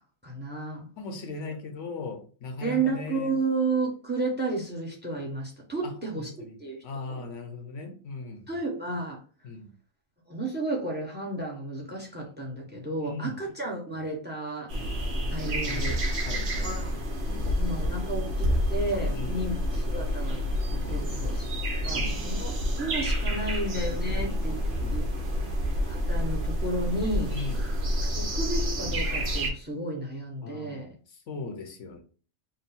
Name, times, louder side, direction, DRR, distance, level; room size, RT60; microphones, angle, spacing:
voice 1, 0.2-0.9 2.6-7.3 8.5-9.2 10.3-14.7 15.3-16.0 16.6-17.0 17.6-20.4 20.7-21.5 21.8-24.6 24.9-25.0 25.9-27.3 28.1-30.9, right 2 dB, 10° right, 0 dB, 1.0 m, -32 dB
voice 2, 1.0-3.4 6.8-8.4 9.4-9.7 13.0-13.4 15.7-15.9 16.2-16.9 17.3-17.5 19.1-19.4 20.8-21.1 21.9-22.3 24.1-24.4 24.8-25.6 27.3-27.6 30.4-30.9 31.3-32.0, left 3 dB, 80° left, 4 dB, 1.2 m, -38 dB
sound 1, 14.7-29.5, equal, 60° right, 1.2 m, -28 dB
3.8 x 2.3 x 4.2 m, 0.39 s
omnidirectional pair, 1.2 m